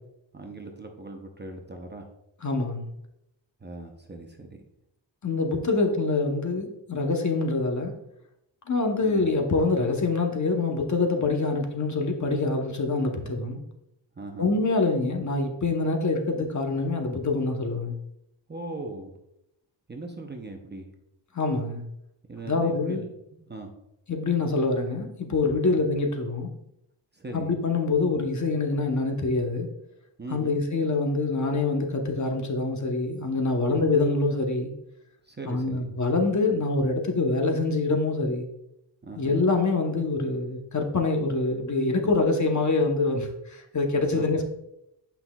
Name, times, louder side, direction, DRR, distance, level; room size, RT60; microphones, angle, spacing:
voice 1, 0.3-2.0 3.6-4.6 9.0-9.3 14.2-14.6 18.5-19.1 19.9-20.9 22.3-23.7 25.6-25.8 27.1-27.6 30.2-30.6 33.7-33.9 35.2-35.9 39.0-39.4 44.1-44.3, right 2 dB, 25° right, 3 dB, 0.7 m, -39 dB
voice 2, 2.4-2.9 5.2-7.9 8.7-13.6 14.4-18.0 21.3-21.8 22.5-23.1 24.1-26.5 27.3-29.7 30.3-34.7 35.4-38.5 39.2-44.4, left 3 dB, 40° left, 3 dB, 0.9 m, -25 dB
8.4 x 5.7 x 2.3 m, 0.82 s
wide cardioid pair, 135°, 46 cm